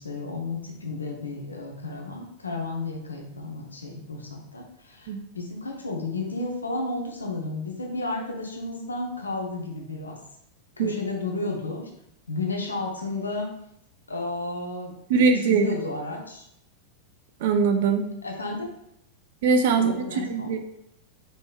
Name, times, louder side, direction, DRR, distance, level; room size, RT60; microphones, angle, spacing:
voice 1, 0.0-10.2 10.8-11.9 12.3-13.5 14.1-16.5 18.2-18.7 19.7-20.5, left 3 dB, 75° left, 1 dB, 0.9 m, -32 dB
voice 2, 15.1-15.7 17.4-18.1 19.4-20.6, right 5 dB, 55° right, 6 dB, 0.6 m, -22 dB
5.2 x 4.3 x 2.4 m, 0.77 s
figure-of-eight pair, 90°, 0 cm